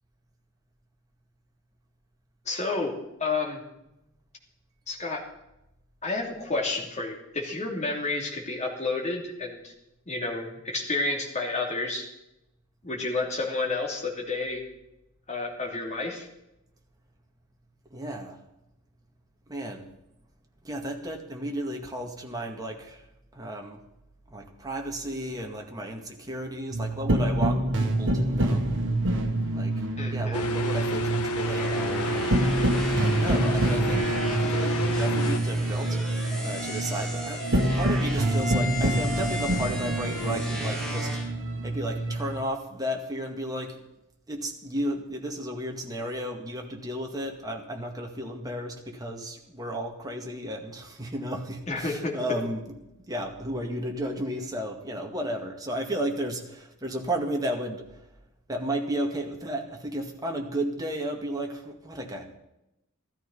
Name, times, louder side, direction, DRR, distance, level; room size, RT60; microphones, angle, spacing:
voice 1, 2.4-2.9 3.2-3.6 4.9-5.2 6.0-9.7 10.1-12.1 12.8-14.6 15.3-16.3 30.0-30.4 51.7-52.1, left 3 dB, 30° left, 1 dB, 3.0 m, -30 dB
voice 2, 17.9-18.4 19.5-19.9 20.6-23.1 23.3-23.8 24.3-28.7 29.5-32.3 32.8-41.1 41.6-43.8 44.3-52.8 53.1-58.1 58.5-62.4, right 1 dB, 15° right, 1 dB, 2.0 m, -33 dB
sound 1, 26.7-42.4, right 1 dB, 60° right, 1.8 m, -27 dB
sound 2, 30.3-35.4, equal, 85° left, 1.4 m, -29 dB
sound 3, 31.4-41.3, left 1 dB, 5° left, 4.3 m, -35 dB
14.0 x 13.5 x 5.5 m, 0.88 s
head